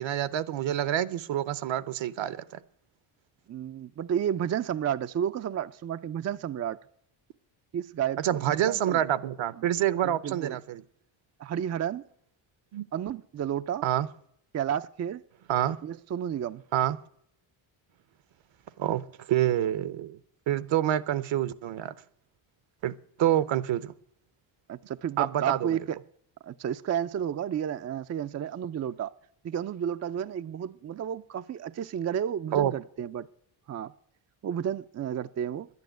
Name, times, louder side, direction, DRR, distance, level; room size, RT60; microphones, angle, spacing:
voice 1, 0.0-2.6 8.2-10.8 12.7-12.9 13.8-14.1 15.5-15.8 16.7-17.0 18.8-20.2 20.5-21.9 22.8-23.9 25.2-25.8 32.5-32.7, right 11 dB, 65° right, 0.9 m, -27 dB
voice 2, 3.5-6.8 7.7-9.0 10.0-10.6 11.4-12.0 12.9-13.9 14.5-15.2 15.8-16.6 24.7-26.0 26.4-29.1 29.4-33.3 33.7-33.9 34.4-35.7, right 9 dB, 35° right, 0.4 m, -31 dB
10.5 x 9.5 x 9.1 m
cardioid pair, 80°, 49 cm